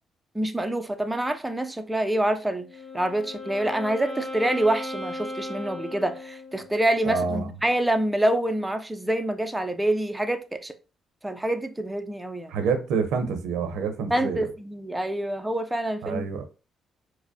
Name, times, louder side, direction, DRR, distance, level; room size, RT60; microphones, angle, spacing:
voice 1, 0.3-2.7 2.9-10.7 11.2-12.5 14.1-16.2, right 1 dB, 10° right, 0.4 m, -26 dB
Wind instrument woodwind instrument, 2.5-6.8, left 2 dB, 30° left, 0.8 m, -37 dB
voice 2, 7.0-7.5 12.5-14.5 16.0-16.5, right 5 dB, 85° right, 0.7 m, -27 dB
4.8 x 2.0 x 2.6 m
cardioid pair, 90°, 0 cm